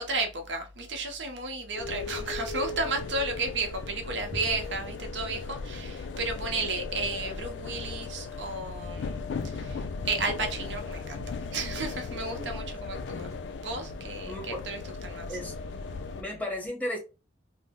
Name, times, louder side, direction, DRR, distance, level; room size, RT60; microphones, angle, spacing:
voice 1, 0.0-15.4, right 3 dB, 70° right, 0.7 m, -33 dB
sound 1, 1.8-16.2, left 4 dB, 65° left, 0.3 m, -37 dB
voice 2, 14.2-14.6 15.3-15.5 16.2-17.0, left 1 dB, 10° left, 0.7 m, -34 dB
2.6 x 2.0 x 3.5 m
head